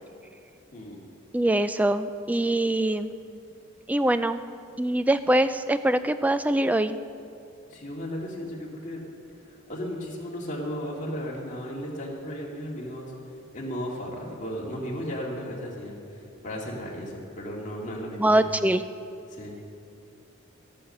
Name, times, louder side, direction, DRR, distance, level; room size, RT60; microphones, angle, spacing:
voice 1, 1.3-3.1 3.9-4.4 4.8-7.0 18.2-18.8, right 1 dB, 5° right, 11 dB, 0.3 m, -23 dB
voice 2, 7.7-9.0 9.4-13.1 13.5-18.4 19.3-19.6, equal, 35° left, -3 dB, 2.2 m, -35 dB
14.0 x 8.8 x 6.6 m, 2.5 s
head